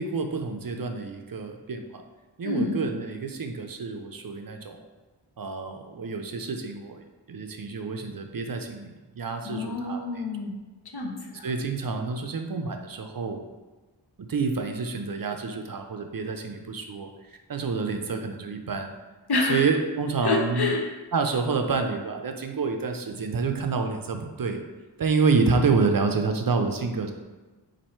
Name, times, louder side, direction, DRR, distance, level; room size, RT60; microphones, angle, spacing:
voice 1, 0.0-2.0 2.4-4.8 5.4-10.1 11.4-13.4 14.2-18.9 19.4-20.7 21.1-24.6 25.0-27.1, right 4 dB, 50° right, 5 dB, 0.5 m, -28 dB
voice 2, 2.4-2.9 9.4-10.6 10.9-11.5 19.3-19.6 20.2-20.9, left 3 dB, 60° left, 1 dB, 0.7 m, -27 dB
4.3 x 2.7 x 4.3 m, 1.2 s
wide cardioid pair, 50°, 44 cm